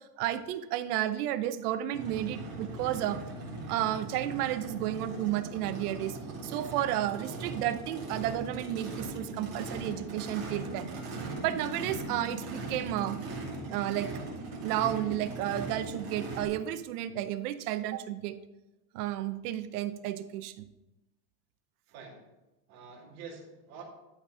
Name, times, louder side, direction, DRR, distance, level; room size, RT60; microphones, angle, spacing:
voice 1, 0.0-3.2 3.7-6.2 6.4-10.9 11.4-13.2 13.7-14.1 14.6-18.4 18.9-20.7, right 12 dB, 75° right, 12 dB, 0.8 m, -32 dB
Race car auto racing / Idling / Accelerating revving vroom, 1.9-16.4, right 2 dB, 30° right, 2.6 m, -39 dB
voice 2, 21.9-22.3 22.7-23.8, right 5 dB, 50° right, -2 dB, 2.5 m, -47 dB
12.5 x 4.3 x 4.9 m, 1.0 s
supercardioid pair, 160°, 46 cm